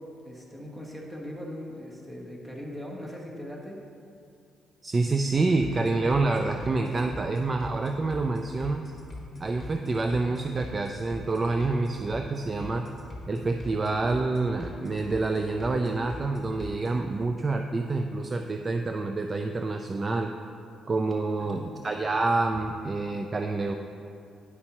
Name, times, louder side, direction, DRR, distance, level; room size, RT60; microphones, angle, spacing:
voice 1, 0.0-3.8 21.4-21.8, equal, 10° right, -2 dB, 1.3 m, -40 dB
voice 2, 4.8-8.9 9.4-12.9 13.3-20.3 20.9-23.7, right 3 dB, 30° right, 5 dB, 0.3 m, -27 dB
sound 1, 5.3-16.9, left 1 dB, 25° left, 1.6 m, -43 dB
9.6 x 5.4 x 3.0 m, 2.5 s
cardioid pair, 90°, 0 cm